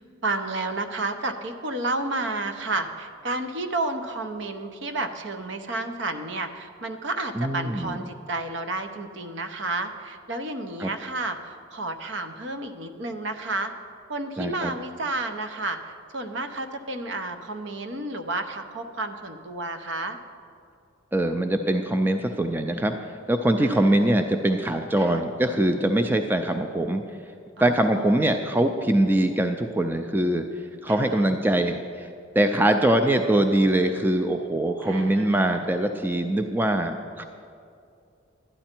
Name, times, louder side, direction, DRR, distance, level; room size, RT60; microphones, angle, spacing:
voice 1, 0.2-13.7 14.1-20.2 23.6-24.2 25.0-25.2 27.6-28.3 30.9-31.3 34.8-35.7, right 2 dB, 60° right, 7 dB, 0.8 m, -31 dB
voice 2, 7.4-8.0 10.8-10.9 14.4-14.7 21.1-27.0 27.6-30.4 30.8-37.2, right 1 dB, 10° right, 6 dB, 0.3 m, -23 dB
12.0 x 10.0 x 4.4 m, 2.4 s
head